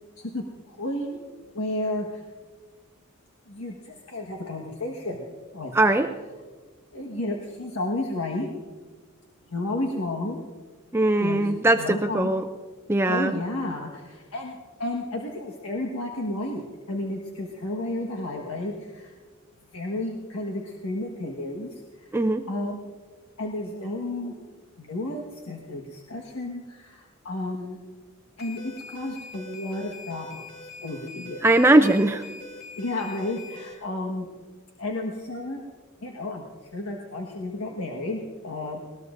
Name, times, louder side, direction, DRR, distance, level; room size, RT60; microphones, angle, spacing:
voice 1, 0.2-1.2 1.5-2.2 3.5-5.3 5.5-6.0 6.9-8.5 9.5-10.4 11.2-12.3 13.0-19.1 19.7-22.1 22.5-22.9 23.4-24.4 24.8-27.8 28.4-31.5 32.7-34.3 34.8-35.6 36.0-36.5 36.7-38.8, left 2 dB, 90° left, 0 dB, 1.4 m, -32 dB
voice 2, 5.7-6.1 10.9-12.4 12.9-13.3 22.1-22.4 31.4-32.2, right 2 dB, 10° right, 6 dB, 0.4 m, -20 dB
sound 1, 28.4-33.7, left 3 dB, 45° left, 2.3 m, -43 dB
20.5 x 19.0 x 2.6 m, 1.4 s
head